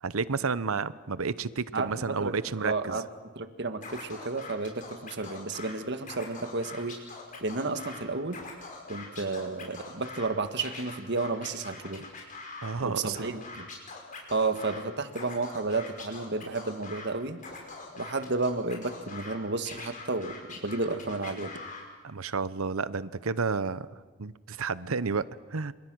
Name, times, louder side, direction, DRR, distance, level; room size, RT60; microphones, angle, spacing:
voice 1, 0.0-3.0 12.6-13.3 22.0-25.7, right 4 dB, 85° right, 16 dB, 0.8 m, -31 dB
voice 2, 1.7-3.1 3.4-7.0 7.4-8.4 8.9-12.0 12.8-13.6 14.3-17.4 18.0-21.5, right 3 dB, 55° right, 9 dB, 1.6 m, -32 dB
Scratching (performance technique), 3.8-5.7 6.0-8.0 8.3-10.3 10.6-12.7 13.1-14.8 15.1-17.1 17.4-19.3 19.7-21.8, left 4 dB, 40° left, 5.7 m, -43 dB
29.0 x 26.5 x 6.2 m, 1.3 s
head